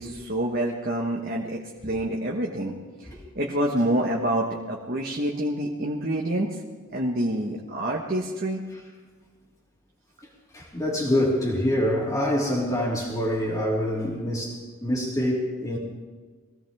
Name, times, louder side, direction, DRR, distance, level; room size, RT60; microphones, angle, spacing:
voice 1, 0.0-6.6 6.9-8.6, right 1 dB, 45° right, -2 dB, 1.4 m, -27 dB
voice 2, 10.5-15.8, left 1 dB, 15° left, -8 dB, 2.8 m, -25 dB
22.5 x 16.5 x 3.6 m, 1.4 s
head